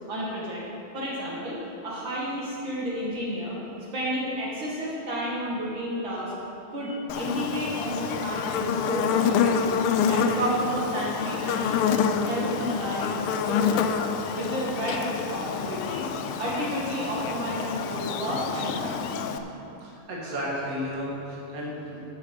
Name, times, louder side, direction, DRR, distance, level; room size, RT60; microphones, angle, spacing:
voice 1, 0.1-0.6 0.9-3.6 3.9-6.3 6.7-9.8 10.1-13.9 14.3-19.3, equal, 60° right, -6 dB, 2.6 m, -31 dB
Buzz, 7.1-19.4, left 6 dB, 80° left, 1.5 m, -27 dB
voice 2, 19.8-22.1, equal, 40° right, -5 dB, 2.3 m, -33 dB
11.0 x 6.7 x 6.7 m, 2.9 s
omnidirectional pair, 2.4 m